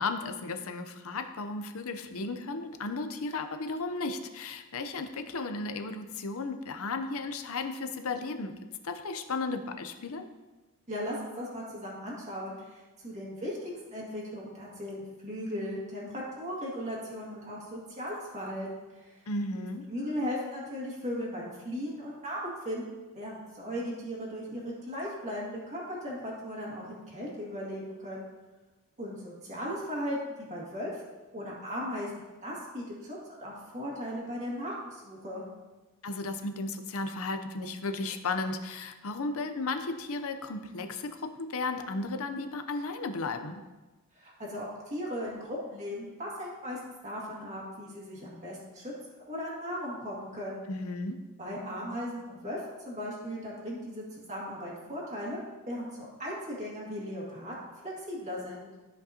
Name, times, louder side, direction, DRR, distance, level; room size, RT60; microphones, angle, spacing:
voice 1, 0.0-8.5 8.8-10.2 19.3-19.8 36.0-43.6 50.7-51.2, left 3 dB, 65° left, 7 dB, 0.7 m, -34 dB
voice 2, 10.9-13.6 13.9-19.2 19.5-22.8 23.1-28.3 29.0-31.0 31.3-35.4 44.2-48.9 49.3-50.6 51.4-58.7, equal, 30° right, -5 dB, 2.0 m, -37 dB
13.0 x 5.3 x 2.8 m, 1.2 s
head